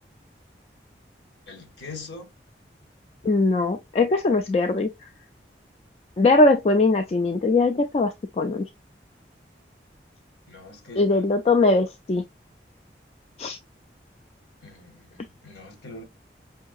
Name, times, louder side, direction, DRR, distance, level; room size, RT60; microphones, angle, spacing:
voice 1, 1.5-2.3 10.5-11.0 14.6-16.0, left 3 dB, 85° left, 1.3 m, -42 dB
voice 2, 3.2-4.9 6.2-8.7 11.0-12.2 13.4-13.6, left 2 dB, 35° left, 0.3 m, -21 dB
5.4 x 2.7 x 2.3 m
head